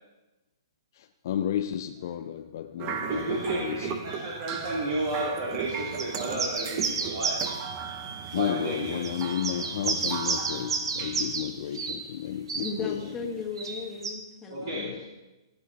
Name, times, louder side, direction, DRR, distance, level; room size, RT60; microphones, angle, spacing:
voice 1, 0.9-3.9 8.3-13.0 14.6-15.0, left 10 dB, 40° left, 0.5 m, -32 dB
sound 1, 2.8-11.4, right 7 dB, 25° right, 0.8 m, -37 dB
voice 2, 3.0-7.4 8.3-9.2 11.6-11.8 14.5-15.1, right 2 dB, 45° right, 3.0 m, -32 dB
sound 2, 6.0-7.6 8.4-8.5 9.0-11.5 11.7-12.0 12.5-12.7 13.6-14.1, right 4 dB, 70° right, 1.8 m, -31 dB
voice 3, 12.6-15.1, left 4 dB, 10° left, 1.4 m, -36 dB
17.5 x 9.9 x 4.1 m
hypercardioid pair, 170°, 3 cm